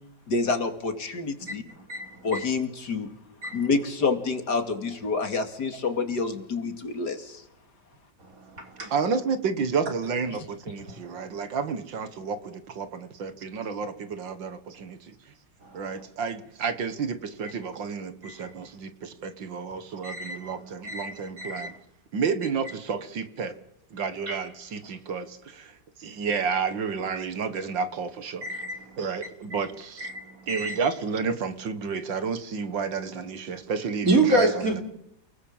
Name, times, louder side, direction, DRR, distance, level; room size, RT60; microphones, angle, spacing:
voice 1, 0.3-1.6 2.2-3.1 3.5-7.4, left 4 dB, 60° left, 2.9 m, -28 dB
voice 2, 1.9-2.4 3.4-3.6 8.8-8.9 18.2-18.5 20.0-20.5 20.8-21.7 24.3-24.4 28.4-28.8 30.0-30.7 34.0-34.8, right 2 dB, 45° right, 4.2 m, -27 dB
voice 3, 8.8-15.1 15.7-21.8 22.1-23.6 23.9-28.6 29.0-30.1 30.5-34.8, right 5 dB, 80° right, 2.2 m, -31 dB
29.0 x 20.0 x 7.4 m
omnidirectional pair, 2.0 m